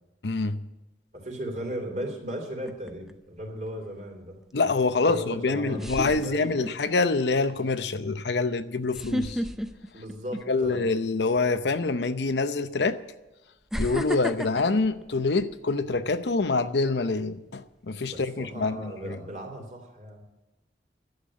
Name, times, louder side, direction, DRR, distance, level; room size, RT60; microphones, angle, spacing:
voice 1, 0.2-0.6 4.5-9.4 10.5-13.0 13.8-19.2, left 3 dB, 75° left, 0.7 m, -26 dB
voice 2, 1.1-4.4 5.0-6.6 9.9-11.0 18.1-20.2, equal, 40° right, 3.2 m, -36 dB
sound 1, 2.7-3.1 5.0-5.1 5.8-6.9 7.4-7.6 8.9-10.8 11.1-11.4 12.4-12.5 13.7-16.0 16.4-16.7, equal, ahead, 0.5 m, -33 dB
12.0 x 8.1 x 8.6 m
head